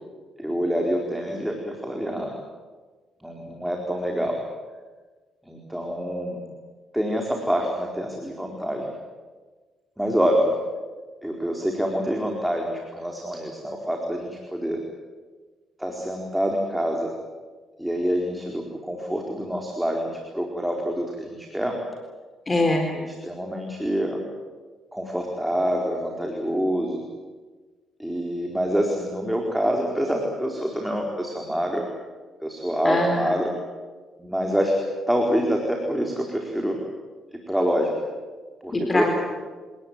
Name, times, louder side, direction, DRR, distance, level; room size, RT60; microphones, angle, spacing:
voice 1, 0.4-2.3 3.2-4.4 5.5-6.4 6.9-8.9 10.0-10.5 11.2-14.8 15.8-17.1 17.8-21.7 22.9-24.2 24.9-27.0 28.0-31.8 32.4-33.5 34.2-34.8 35.1-36.8 37.5-37.9 38.6-39.1, equal, 5° right, 1 dB, 4.4 m, -26 dB
voice 2, 22.5-22.9 32.8-33.4 38.7-39.1, left 2 dB, 25° left, 4 dB, 4.0 m, -23 dB
26.5 x 19.0 x 9.6 m, 1.4 s
cardioid pair, 90°, 0 cm